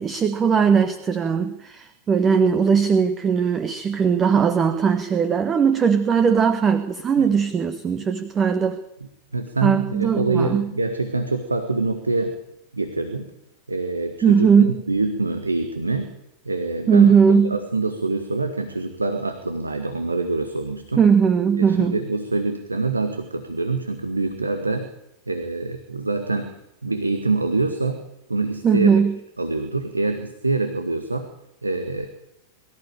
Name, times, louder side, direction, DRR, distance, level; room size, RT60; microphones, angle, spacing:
voice 1, 0.0-8.8 9.6-10.7 14.2-14.7 16.9-17.5 21.0-22.0 28.6-29.1, right 6 dB, 25° right, 10 dB, 1.4 m, -19 dB
voice 2, 9.3-12.4 12.7-13.3 13.7-16.1 16.5-21.0 21.6-24.9 25.3-26.6 26.8-28.0 28.3-28.9 29.4-31.3 31.6-32.1, right 3 dB, 80° right, 7 dB, 1.7 m, -25 dB
23.0 x 15.0 x 9.0 m, 0.83 s
figure-of-eight pair, 90°, 0 cm